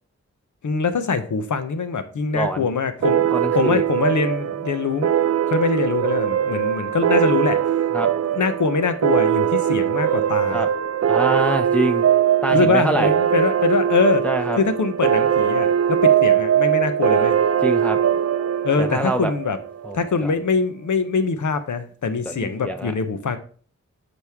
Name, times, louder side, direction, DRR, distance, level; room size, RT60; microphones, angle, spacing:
voice 1, 0.6-3.3 3.5-5.1 5.5-7.6 8.2-10.6 12.5-14.3 14.6-17.3 18.6-19.6 19.9-23.4, left 5 dB, 80° left, 10 dB, 0.9 m, -23 dB
voice 2, 2.3-2.7 3.3-3.8 7.9-8.1 10.5-10.7 11.1-12.1 12.4-13.1 14.2-14.6 17.6-18.0 18.8-19.3 19.8-20.3 22.3-22.9, right 1 dB, 5° left, 6 dB, 0.6 m, -25 dB
sound 1, 3.0-20.1, right 9 dB, 55° right, 0.5 m, -21 dB
8.1 x 5.1 x 3.6 m, 0.43 s
cardioid pair, 45°, 30 cm